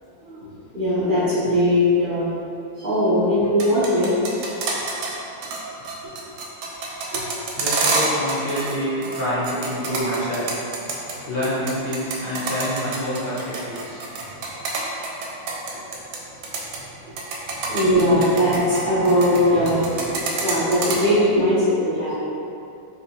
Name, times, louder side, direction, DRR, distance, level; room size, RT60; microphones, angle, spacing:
voice 1, 0.7-2.3 2.8-4.2 17.1-17.2 17.5-20.1 20.4-22.2, equal, 55° right, -13 dB, 0.5 m, -20 dB
sound 1, 3.4-5.1 5.4-5.6 5.8-8.7 9.0-11.1 11.4-16.2 16.4-16.8 17.2-19.4 19.7-21.0, right 4 dB, 80° right, 1.3 m, -26 dB
voice 2, 7.6-10.5 11.0-14.1, equal, 65° left, -9 dB, 1.3 m, -27 dB
4.0 x 2.6 x 2.8 m, 2.7 s
omnidirectional pair, 2.2 m